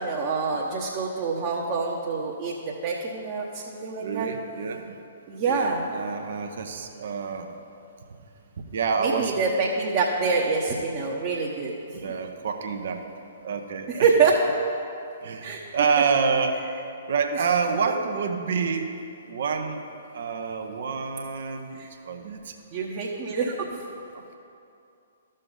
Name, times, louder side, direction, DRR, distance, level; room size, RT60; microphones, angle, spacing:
voice 1, 0.0-4.3 5.3-5.8 9.0-11.7 13.9-14.4 15.4-15.6 21.7-21.9 22.7-23.7, right 4 dB, 35° right, -3 dB, 1.0 m, -26 dB
voice 2, 4.0-4.9 5.5-7.5 8.7-9.4 11.9-13.0 13.4-14.1 15.2-16.7 17.1-18.9 19.3-19.8 20.1-21.8 22.1-22.5 23.3-23.7 24.1-24.2, right 5 dB, 55° right, 5 dB, 0.8 m, -28 dB
13.5 x 6.5 x 3.9 m, 2.6 s
figure-of-eight pair, 120°, 0 cm